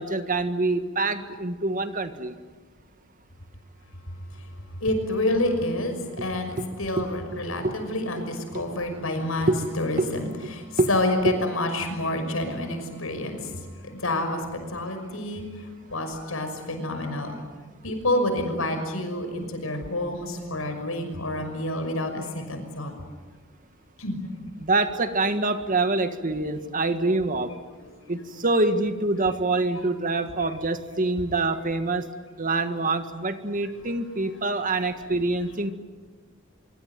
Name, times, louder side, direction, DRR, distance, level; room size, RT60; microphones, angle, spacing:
voice 1, 0.0-2.3 6.2-6.3 6.6-6.7 7.0-7.1 7.3-7.8 8.2-8.3 8.5-8.6 9.5-9.6 10.0-10.1 10.4-10.5 10.8-10.9 11.2-11.4 24.6-27.5 28.1-32.1 32.4-35.7, right 2 dB, 40° right, 9 dB, 1.7 m, -25 dB
voice 2, 4.8-13.5 13.8-15.4 15.9-17.3 17.8-22.9 24.0-24.2 28.0-28.1, left 1 dB, 85° left, 7 dB, 6.0 m, -28 dB
25.0 x 24.5 x 9.2 m, 1.4 s
head